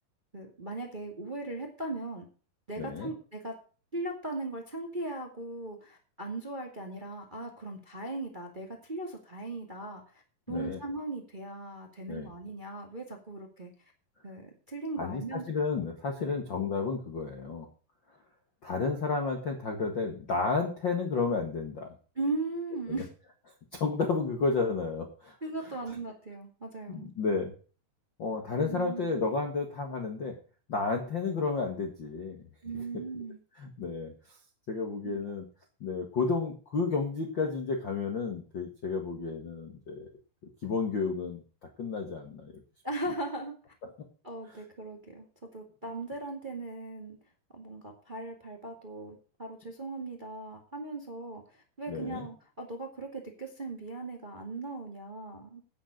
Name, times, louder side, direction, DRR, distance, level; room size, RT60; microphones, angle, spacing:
voice 1, 0.3-2.2 2.7-3.5 3.9-10.2 10.5-13.7 14.2-15.6 16.2-16.4 22.1-23.1 25.4-27.1 28.6-29.1 32.6-33.4 35.0-35.3 42.8-43.5 44.2-45.3 45.5-47.2 47.5-55.6, right 2 dB, 20° right, 2 dB, 1.6 m, -38 dB
voice 2, 2.8-3.1 10.5-10.8 12.1-12.3 15.0-17.7 18.6-21.9 22.9-23.0 23.7-25.4 26.9-27.5 28.2-30.4 30.7-32.5 33.6-34.4 34.7-35.4 35.8-40.1 40.6-41.4 41.8-42.5 51.9-52.3, left 4 dB, 45° left, 3 dB, 1.6 m, -31 dB
10.0 x 9.4 x 6.4 m, 0.38 s
omnidirectional pair, 4.3 m